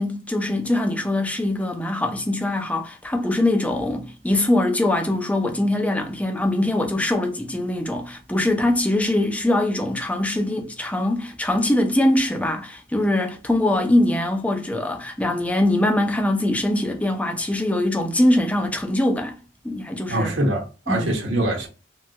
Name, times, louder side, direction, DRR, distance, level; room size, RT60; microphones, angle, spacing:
voice 1, 0.0-19.4 19.6-20.3 20.9-21.1, left 1 dB, 5° left, 0.4 m, -22 dB
voice 2, 20.1-21.7, right 1 dB, 85° right, 0.9 m, -23 dB
3.1 x 2.3 x 2.7 m
head